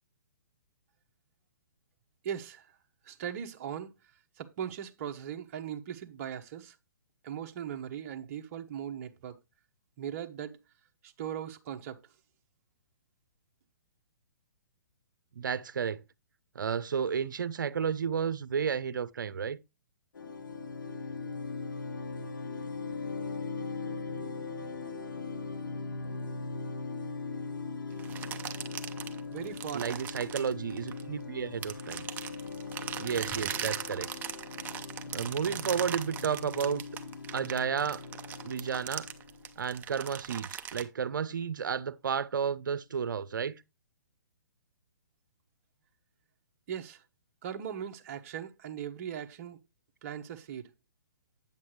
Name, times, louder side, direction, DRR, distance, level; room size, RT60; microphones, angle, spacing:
voice 1, 2.2-2.7 3.0-3.9 4.4-6.7 7.2-9.4 10.0-10.6 11.0-12.0 29.3-30.0 46.7-47.0 47.4-49.6 50.0-50.7, right 9 dB, 45° right, 1.0 m, -39 dB
voice 2, 15.4-16.0 16.5-19.6 29.7-32.1 33.0-34.1 35.1-36.8 37.3-38.0 38.4-39.1 39.6-43.5, right 7 dB, 75° right, 0.7 m, -32 dB
sound 1, 20.1-39.7, left 4 dB, 75° left, 1.6 m, -40 dB
sound 2, 28.0-31.2 31.6-40.8, right 9 dB, 15° right, 0.7 m, -39 dB
8.9 x 8.3 x 3.2 m
hypercardioid pair, 140°, 11 cm